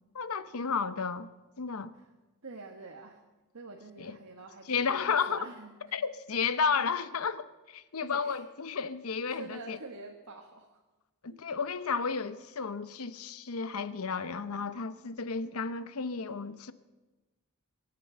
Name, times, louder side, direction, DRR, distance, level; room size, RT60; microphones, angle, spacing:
voice 1, 0.1-1.3 1.6-1.9 4.0-4.2 4.7-5.4 5.9-9.8 11.2-16.7, left 5 dB, 70° left, 0.8 m, -32 dB
voice 2, 2.4-3.2 3.5-5.7 8.0-8.4 9.3-10.8 11.3-11.5, right 3 dB, 80° right, 1.4 m, -47 dB
22.5 x 7.7 x 6.9 m
head